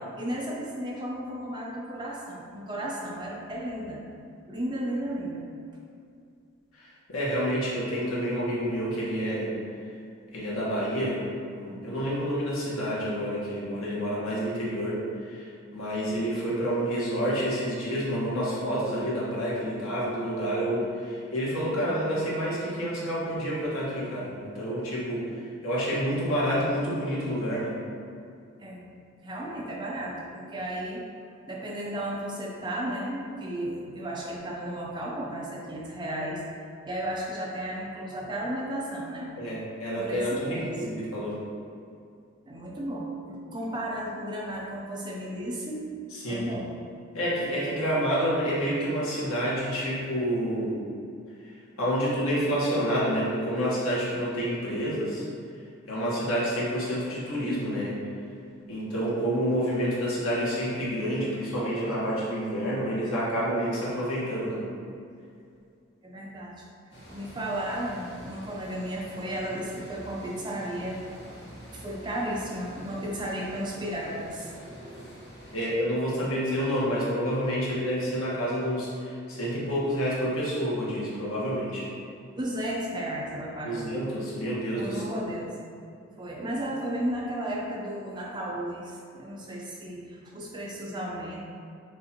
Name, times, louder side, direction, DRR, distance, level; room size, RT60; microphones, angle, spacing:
voice 1, 0.0-4.0 4.5-5.5 28.6-28.9 29.2-31.0 31.5-36.6 36.9-39.3 40.0-40.8 42.5-45.9 46.3-46.7 66.0-66.6 67.1-71.0 71.7-75.3 82.4-83.9 84.8-85.5 85.8-91.4, right 1 dB, 20° right, -3 dB, 0.5 m, -34 dB
voice 2, 6.7-9.5 10.3-27.8 39.4-41.4 46.1-46.5 47.1-50.8 51.8-55.2 55.9-58.0 58.7-64.6 75.5-81.9 83.6-85.0, equal, 80° left, -6 dB, 1.2 m, -28 dB
sound 1, 66.9-75.7, equal, 55° left, 1.2 m, -47 dB
6.2 x 2.5 x 2.8 m, 2.4 s
head